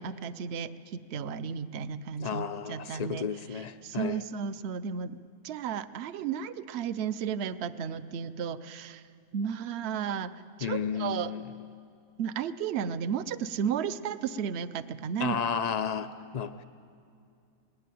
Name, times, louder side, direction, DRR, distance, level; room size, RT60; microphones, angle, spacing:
voice 1, 0.0-3.2 3.5-9.0 9.3-10.3 10.6-11.3 12.2-15.4, right 7 dB, 60° right, 13 dB, 0.8 m, -33 dB
voice 2, 2.2-4.2 10.6-11.4 15.2-16.6, left 7 dB, 75° left, 10 dB, 0.3 m, -33 dB
19.5 x 17.0 x 9.3 m, 2.4 s
omnidirectional pair, 1.5 m